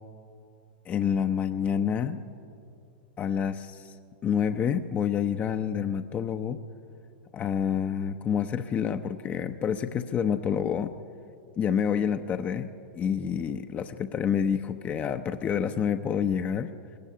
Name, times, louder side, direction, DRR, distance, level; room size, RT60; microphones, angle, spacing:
voice 1, 0.9-2.2 3.2-4.0 4.2-6.6 7.3-10.9 11.6-16.7, left 8 dB, 25° left, 8 dB, 0.7 m, -28 dB
21.5 x 17.5 x 9.8 m, 2.6 s
hypercardioid pair, 110°, 6 cm